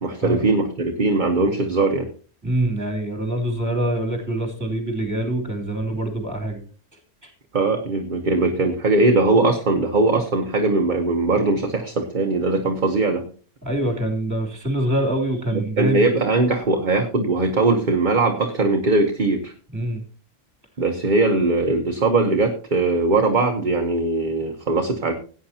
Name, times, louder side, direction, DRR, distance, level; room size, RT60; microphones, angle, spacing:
voice 1, 0.0-2.1 7.5-13.2 15.5-19.5 20.8-25.1, right 3 dB, 40° right, 4 dB, 1.2 m, -20 dB
voice 2, 2.4-6.6 7.2-7.3 13.6-16.1 19.7-20.0, right 1 dB, 15° right, 3 dB, 3.0 m, -25 dB
17.0 x 9.0 x 2.8 m, 0.39 s
omnidirectional pair, 1.3 m